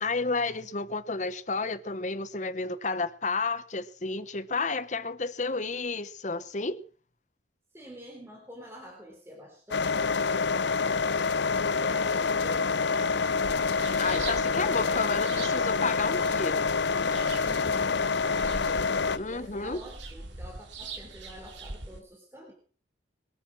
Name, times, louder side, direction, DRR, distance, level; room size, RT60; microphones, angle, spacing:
voice 1, 0.0-6.8 14.0-16.6 19.1-19.8, left 3 dB, 40° left, 0.9 m, -31 dB
voice 2, 7.7-11.4 11.8-13.7 14.2-15.0 16.1-16.7 17.4-18.7 19.2-22.5, equal, 15° right, 3.5 m, -47 dB
sound 1, 9.7-19.2, left 4 dB, 65° left, 0.6 m, -27 dB
sound 2, 13.4-22.0, right 3 dB, 75° right, 2.7 m, -42 dB
21.5 x 9.2 x 6.2 m
head